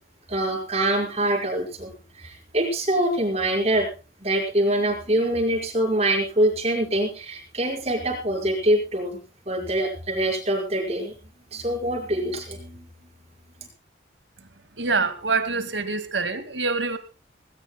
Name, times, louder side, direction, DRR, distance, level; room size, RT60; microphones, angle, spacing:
voice 1, 0.3-1.9 2.2-3.9 4.2-9.2 9.5-11.1 11.5-12.9, right 1 dB, 35° right, 2 dB, 5.4 m, -24 dB
voice 2, 14.8-17.0, right 4 dB, 85° right, 12 dB, 2.1 m, -25 dB
20.0 x 19.0 x 2.3 m, 0.34 s
head